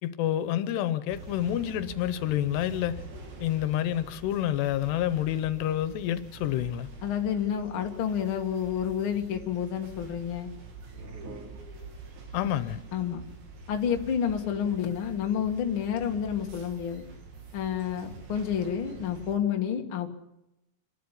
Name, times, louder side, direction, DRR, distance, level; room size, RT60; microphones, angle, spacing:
voice 1, 0.0-3.0 3.4-6.9 12.3-12.8, left 12 dB, 85° left, 14 dB, 3.0 m, -28 dB
sound 1, 1.1-19.4, right 3 dB, 85° right, 5.3 m, -46 dB
voice 2, 7.0-10.5 12.9-13.2 13.7-17.0 17.5-20.1, left 8 dB, 45° left, 3 dB, 1.9 m, -29 dB
sound 2, 10.8-12.4, right 2 dB, 45° right, 1.8 m, -46 dB
27.0 x 12.0 x 10.0 m, 0.89 s
omnidirectional pair, 4.7 m